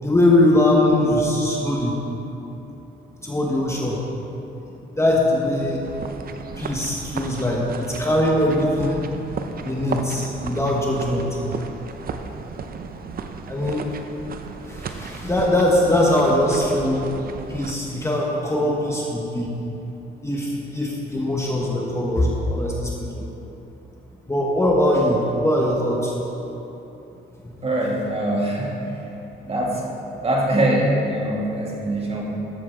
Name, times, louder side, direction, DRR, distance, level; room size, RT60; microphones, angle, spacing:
voice 1, 0.0-2.0 3.2-4.0 4.9-5.9 6.6-9.0 9.6-11.3 13.5-13.9 14.7-17.1 17.5-19.5 20.2-23.2 24.3-26.1 27.4-27.5, left 1 dB, 15° left, -3 dB, 1.3 m, -21 dB
sound 1, 5.8-17.7, right 5 dB, 50° right, 0.7 m, -35 dB
voice 2, 27.6-29.0 29.4-29.9 30.2-32.2, right 1 dB, 30° right, -3 dB, 2.1 m, -23 dB
13.0 x 7.6 x 3.7 m, 3.0 s
cardioid pair, 90°, 20 cm